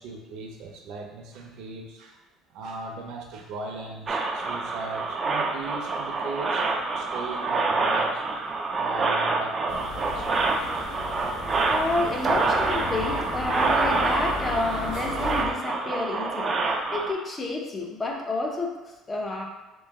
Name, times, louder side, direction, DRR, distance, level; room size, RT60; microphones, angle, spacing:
voice 1, 0.0-2.2 2.5-8.2 8.7-10.7, right 3 dB, 65° right, 1 dB, 0.7 m, -38 dB
sound 1, 4.1-17.1, right 3 dB, 30° right, 0.4 m, -27 dB
sound 2, 9.7-15.4, left 3 dB, 60° left, 0.7 m, -35 dB
voice 2, 11.6-16.5 16.9-18.8 19.1-19.4, left 2 dB, 20° left, 1 dB, 0.6 m, -29 dB
3.2 x 3.0 x 3.5 m, 1.1 s
cardioid pair, 140°, 0 cm